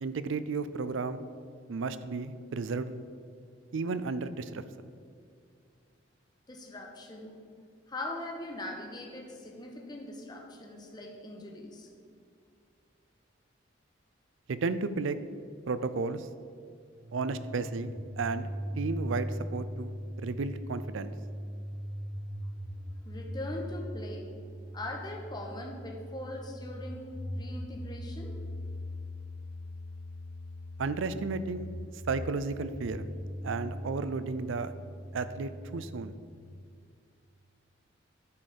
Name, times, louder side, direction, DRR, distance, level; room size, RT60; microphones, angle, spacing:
voice 1, 0.0-1.2 1.7-2.9 3.7-4.6 14.5-15.2 15.7-16.3 17.1-18.5 18.8-21.1 30.8-31.7 32.1-33.1 33.4-34.7 35.1-36.1, right 4 dB, 75° right, 13 dB, 0.4 m, -33 dB
voice 2, 6.5-7.3 7.9-11.9 23.1-24.3 24.7-28.4, left 1 dB, 20° left, 1 dB, 0.9 m, -41 dB
sound 1, 16.9-36.1, equal, 40° right, 0.9 m, -40 dB
9.7 x 4.1 x 6.6 m, 2.2 s
head